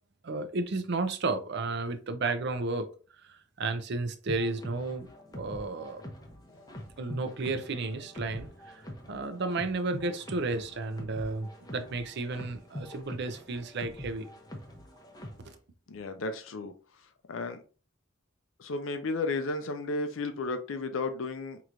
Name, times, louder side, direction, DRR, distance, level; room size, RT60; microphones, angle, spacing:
voice 1, 0.2-2.9 3.2-5.1 5.3-6.1 7.0-14.3 15.4-15.5, right 3 dB, 60° right, 0.5 m, -33 dB
sound 1, 4.3-15.6, left 1 dB, 20° left, 0.7 m, -45 dB
voice 2, 15.9-16.7 17.3-17.6 18.6-21.6, left 3 dB, 80° left, 0.5 m, -33 dB
4.6 x 3.0 x 2.5 m
head